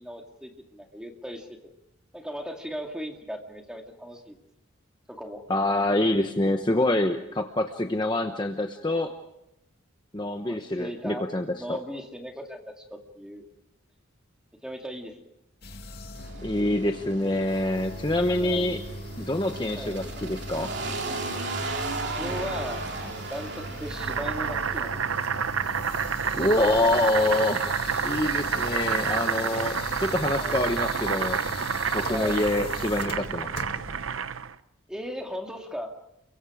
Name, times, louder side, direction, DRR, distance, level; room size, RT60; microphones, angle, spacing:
voice 1, 0.0-1.7 2.1-4.4 5.1-5.4 10.5-11.3 11.5-13.4 14.6-15.3 18.4-18.7 19.8-20.0 22.0-25.2 30.4-30.6 32.1-32.4 34.9-35.9, equal, 5° right, 2 dB, 2.2 m, -38 dB
voice 2, 5.5-9.1 10.1-11.8 16.4-18.8 19.2-20.7 26.3-27.6 28.0-31.4 31.9-33.6, left 1 dB, 20° left, 5 dB, 1.0 m, -26 dB
sound 1, 15.6-34.0, left 2 dB, 50° left, 2.2 m, -40 dB
sound 2, 16.1-25.8, right 3 dB, 55° right, 3.1 m, -36 dB
Boiling, 23.9-34.5, right 6 dB, 80° right, 0.7 m, -29 dB
30.0 x 23.5 x 5.0 m, 0.82 s
head